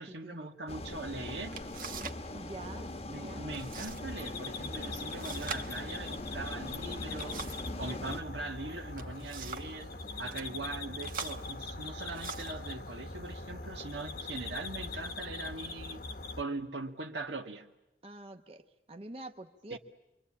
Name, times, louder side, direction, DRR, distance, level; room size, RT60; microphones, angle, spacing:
voice 1, 0.0-1.6 3.1-7.5 7.8-9.9 10.2-16.1 16.4-17.7 19.7-19.8, right 2 dB, 85° right, 4 dB, 2.0 m, -41 dB
sound 1, 0.7-8.2, left 1 dB, 35° left, 1.1 m, -41 dB
sound 2, 1.0-1.1 1.5-2.3 2.5-3.0 3.5-4.0 4.3-4.4 5.1-7.8 8.7-9.8 10.2-10.5 11.0-12.7 13.4-13.6 14.1-14.6, right 6 dB, 50° right, 1.4 m, -44 dB
voice 2, 2.3-2.9 3.1-3.5 10.0-10.7 18.0-19.8, right 2 dB, 35° right, 5 dB, 0.9 m, -47 dB
sound 3, 3.7-16.4, left 3 dB, 55° left, 1.1 m, -42 dB
27.0 x 24.0 x 8.8 m, 0.93 s
head